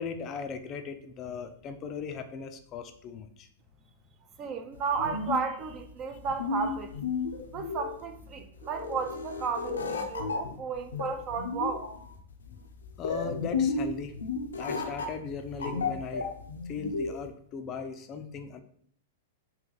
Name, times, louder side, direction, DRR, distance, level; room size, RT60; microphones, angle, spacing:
voice 1, 0.0-3.5 6.1-6.2 12.5-12.6 13.0-14.1 14.6-16.3 16.7-18.6, left 6 dB, 35° left, 0.4 m, -38 dB
voice 2, 4.4-6.9 7.5-11.9, right 5 dB, 35° right, 0.5 m, -33 dB
sound 1, 4.7-17.3, left 4 dB, 90° left, 0.5 m, -33 dB
3.1 x 2.9 x 3.8 m
hypercardioid pair, 115°, 0 cm